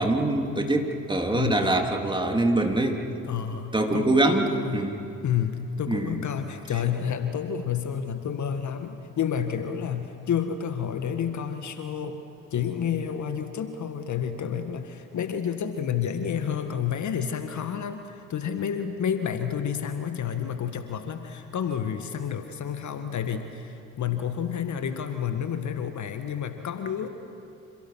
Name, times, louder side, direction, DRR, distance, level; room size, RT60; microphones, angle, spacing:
voice 1, 0.0-3.0 3.7-5.0 5.9-6.2, right 2 dB, 10° right, 2 dB, 3.4 m, -24 dB
voice 2, 1.3-1.7 3.2-4.1 4.5-4.9 5.2-12.2 12.5-27.1, left 8 dB, 50° left, 8 dB, 1.7 m, -30 dB
30.0 x 28.0 x 6.0 m, 2.6 s
figure-of-eight pair, 45°, 38 cm